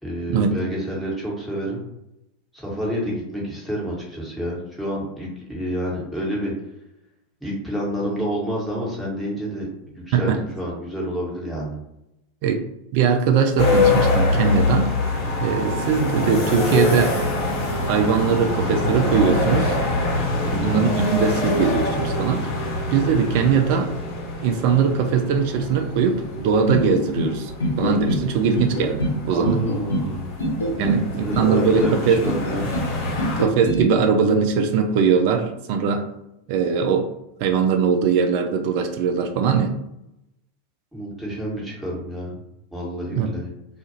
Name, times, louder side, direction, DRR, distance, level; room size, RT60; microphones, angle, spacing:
voice 1, 0.0-1.8 2.5-6.5 7.4-9.7 9.9-11.8 20.4-20.7 29.3-30.3 30.7-32.7 40.9-42.3 42.7-43.5, equal, ahead, -6 dB, 1.3 m, -28 dB
voice 2, 12.9-14.9 15.4-17.2 17.9-19.8 20.6-22.5 22.9-23.9 24.4-27.5 27.8-29.6 30.8-32.2 33.4-36.1 36.5-37.1 37.4-39.7 43.1-43.3, right 6 dB, 55° right, 5 dB, 0.3 m, -20 dB
sound 1, 13.6-33.4, left 2 dB, 55° left, 1.1 m, -25 dB
sound 2, 26.7-27.3 27.6-28.2 28.5-29.2 29.4-30.1 30.4-31.0 31.3-31.9 32.2-32.9 33.2-33.8, left 1 dB, 90° left, 0.7 m, -24 dB
2.4 x 2.4 x 2.8 m, 0.85 s
hypercardioid pair, 90°, 0 cm